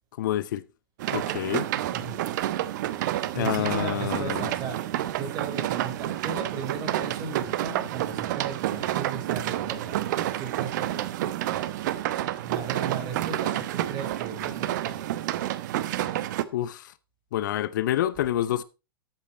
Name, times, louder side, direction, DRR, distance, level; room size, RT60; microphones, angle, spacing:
voice 1, 0.2-0.6 1.1-1.7 3.3-4.5 16.5-16.9 17.3-18.6, left 12 dB, 60° left, 0.8 m, -27 dB
sound 1, 1.0-16.4, right 13 dB, 55° right, 1.0 m, -29 dB
voice 2, 1.9-2.2 3.3-10.1 10.4-11.1 12.4-15.3, right 5 dB, 35° right, 4.5 m, -36 dB
13.0 x 8.6 x 4.3 m
figure-of-eight pair, 100°, 12 cm